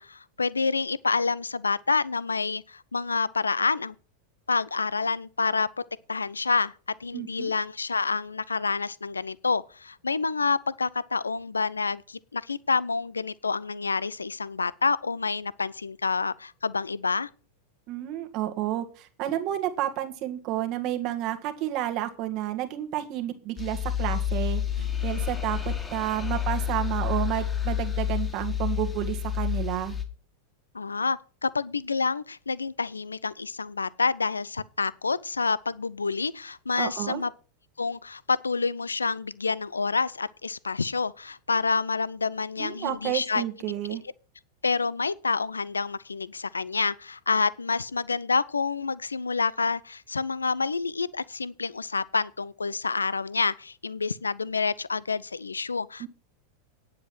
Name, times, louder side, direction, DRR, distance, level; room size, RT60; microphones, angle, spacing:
voice 1, 0.0-4.0 4.5-5.7 6.1-6.7 7.0-17.3 30.7-37.3 37.8-43.4 44.6-56.1, left 4 dB, 75° left, 0.5 m, -28 dB
voice 2, 7.1-7.5 17.9-30.0 36.7-37.2 42.6-44.0 56.0-56.1, right 13 dB, 40° right, 1.7 m, -31 dB
sound 1, 23.6-30.1, left 9 dB, 15° left, 1.6 m, -29 dB
9.8 x 7.6 x 6.1 m
figure-of-eight pair, 90°, 0 cm